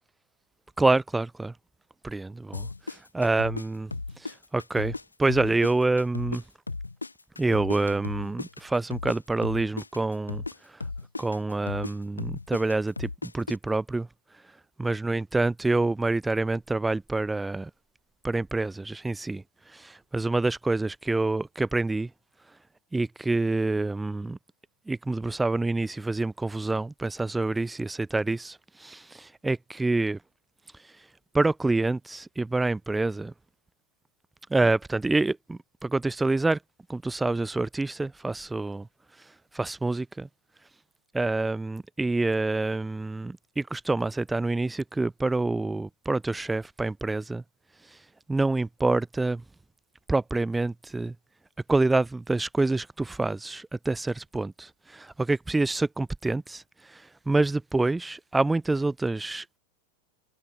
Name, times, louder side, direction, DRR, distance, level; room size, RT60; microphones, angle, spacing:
voice 1, 0.8-1.5 2.0-3.9 4.2-6.4 7.4-10.4 11.2-14.1 14.8-17.7 18.2-19.4 19.7-22.1 22.9-24.4 24.9-30.2 31.3-33.3 34.5-36.6 36.9-38.9 39.5-40.3 41.1-47.4 48.3-49.4 50.1-51.1 51.7-56.6 56.9-59.6, right 2 dB, 10° right, 0.5 m, -27 dB
sound 1, 2.5-5.0 5.3-9.2 9.4-13.6, left 3 dB, 80° left, 0.6 m, -35 dB
open air
figure-of-eight pair, 90°, 0 cm